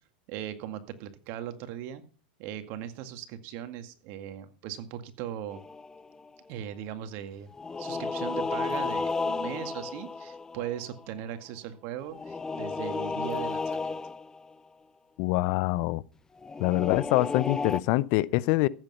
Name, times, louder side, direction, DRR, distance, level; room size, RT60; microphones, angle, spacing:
voice 1, 0.3-2.0 2.4-5.6 6.5-7.5 7.8-14.0, right 10 dB, 50° right, 2.0 m, -38 dB
sound 1, 5.5-6.3 7.5-11.1 12.1-14.5 16.4-17.8, left 4 dB, 10° left, 0.6 m, -33 dB
voice 2, 15.2-16.0 16.6-18.7, left 19 dB, 50° left, 0.6 m, -25 dB
14.5 x 8.3 x 5.6 m
hypercardioid pair, 120°, 5 cm